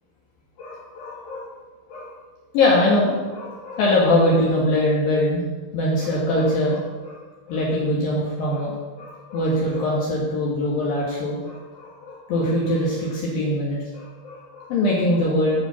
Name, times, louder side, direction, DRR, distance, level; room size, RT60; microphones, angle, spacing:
voice 1, 0.6-1.5 1.9-2.1 2.5-5.4 5.7-7.2 7.5-15.6, left 1 dB, 65° left, -5 dB, 2.5 m, -22 dB
11.0 x 5.6 x 5.7 m, 1.3 s
omnidirectional pair, 5.6 m